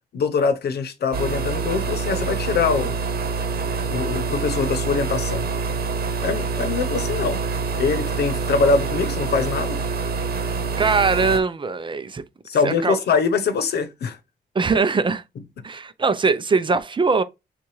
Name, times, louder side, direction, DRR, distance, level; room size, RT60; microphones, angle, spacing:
voice 1, 0.1-2.9 3.9-5.5 6.2-7.4 7.8-9.8 12.5-14.2, left 5 dB, 85° left, 0.8 m, -23 dB
sound 1, 1.1-11.4, right 4 dB, 70° right, 1.0 m, -26 dB
voice 2, 10.8-12.2 12.6-13.0 14.5-15.2 15.6-17.2, right 4 dB, 30° right, 0.5 m, -21 dB
6.8 x 2.4 x 3.2 m
cardioid pair, 110°, 16 cm